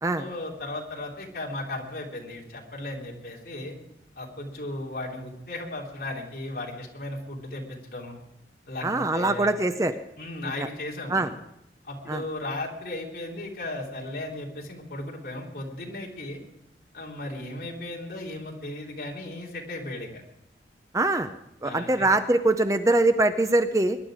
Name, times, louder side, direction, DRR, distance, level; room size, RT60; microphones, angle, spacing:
voice 1, 0.1-3.7 4.1-8.2 8.7-9.5 10.2-11.3 11.8-16.4 16.9-20.2 21.6-22.1, left 2 dB, 55° left, -2 dB, 3.3 m, -36 dB
voice 2, 8.8-9.9 11.1-11.3 12.1-12.2 20.9-21.3 21.6-24.0, right 2 dB, 20° right, 9 dB, 0.5 m, -23 dB
22.0 x 11.0 x 4.9 m, 0.84 s
head